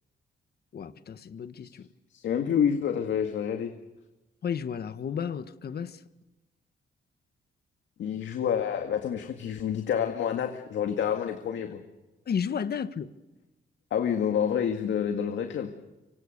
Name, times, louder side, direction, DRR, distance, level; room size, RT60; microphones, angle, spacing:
voice 1, 0.7-1.7 4.4-5.9 12.3-13.1, left 7 dB, 55° left, 1.4 m, -32 dB
voice 2, 2.1-3.7 8.0-11.8 13.9-15.7, left 8 dB, 85° left, 2.0 m, -28 dB
25.5 x 25.0 x 6.7 m
cardioid pair, 105°, 19 cm